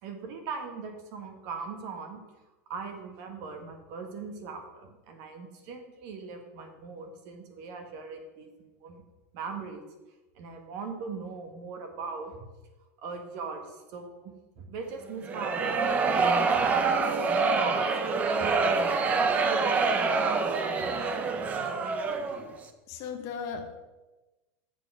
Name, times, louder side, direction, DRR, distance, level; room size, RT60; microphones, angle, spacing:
voice 1, 0.0-2.2 2.7-8.5 8.8-9.0 9.3-9.8 10.4-12.5 13.0-17.3 17.6-17.9 18.4-21.0, right 4 dB, 45° right, 5 dB, 1.5 m, -40 dB
sound 1, 15.2-22.5, right 4 dB, 20° right, 0.7 m, -26 dB
voice 2, 22.9-23.8, left 6 dB, 35° left, 6 dB, 1.0 m, -36 dB
7.5 x 6.9 x 6.1 m, 1.1 s
supercardioid pair, 165°, 8 cm